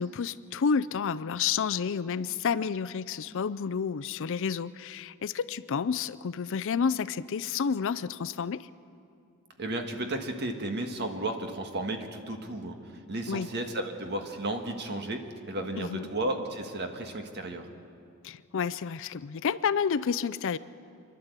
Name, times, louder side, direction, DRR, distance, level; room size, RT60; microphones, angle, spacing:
voice 1, 0.0-8.7 13.3-13.5 15.8-16.1 18.2-20.6, left 6 dB, 60° left, 16 dB, 0.5 m, -30 dB
voice 2, 9.6-17.7, right 1 dB, 50° right, 5 dB, 1.6 m, -34 dB
27.5 x 11.5 x 8.1 m, 2.5 s
head